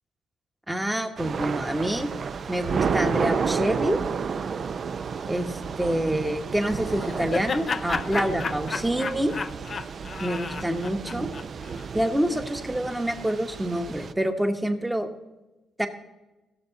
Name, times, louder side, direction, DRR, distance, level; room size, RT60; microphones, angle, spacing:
voice 1, 0.7-2.1 2.5-4.0 5.3-9.3 10.2-11.3 11.9-15.1 15.8-15.9, right 1 dB, 5° right, 6 dB, 1.1 m, -27 dB
Thunder / Rain, 1.2-14.1, right 6 dB, 45° right, 0.4 m, -31 dB
Laughter, 6.7-11.9, left 5 dB, 40° left, 0.4 m, -33 dB
17.5 x 6.8 x 4.0 m, 1.1 s
cardioid pair, 120°, 0 cm